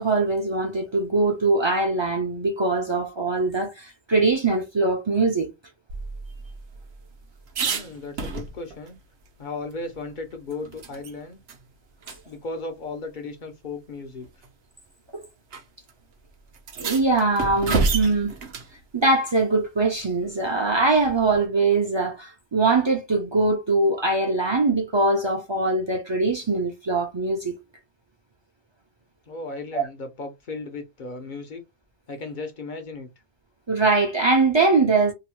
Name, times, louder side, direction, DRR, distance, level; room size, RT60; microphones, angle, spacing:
voice 1, 0.0-5.5 15.1-15.2 16.8-18.4 18.9-27.6 29.7-29.8 33.7-35.1, right 3 dB, 35° right, 0.4 m, -22 dB
sound 1, 5.9-8.9 9.3-9.4 9.7-11.1 11.5-11.6 12.0-12.2 13.2-13.3 14.2-14.5 15.5-15.6 15.9-16.0 16.5-18.7 21.0-21.5, right 4 dB, 60° right, 0.8 m, -30 dB
voice 2, 7.6-9.0 9.4-11.4 12.3-14.3 29.3-31.6 32.1-33.1, left 3 dB, 50° left, 0.6 m, -35 dB
2.8 x 2.0 x 2.9 m
omnidirectional pair, 1.3 m